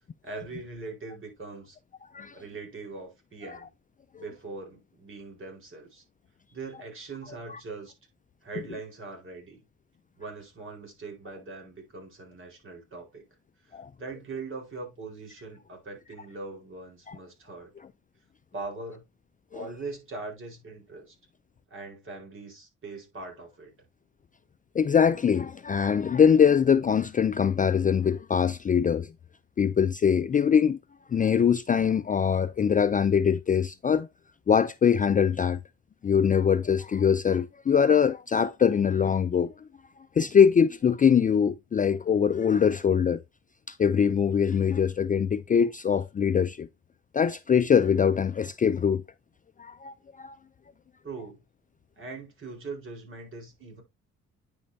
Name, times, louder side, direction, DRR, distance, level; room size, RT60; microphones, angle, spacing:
voice 1, 0.2-1.8 2.3-3.7 4.2-6.0 6.5-7.9 8.4-9.6 10.2-13.2 13.7-17.7 18.5-19.0 19.5-21.2 21.7-23.7 51.0-51.4 52.0-53.8, right 3 dB, 40° right, 4.3 m, -41 dB
voice 2, 24.7-29.1 29.6-30.8 31.1-34.1 34.5-35.6 36.0-39.5 40.2-43.2 43.7-46.7 47.1-49.0 49.6-50.4, left 7 dB, 25° left, 0.4 m, -23 dB
9.6 x 5.4 x 2.7 m
cardioid pair, 90°, 30 cm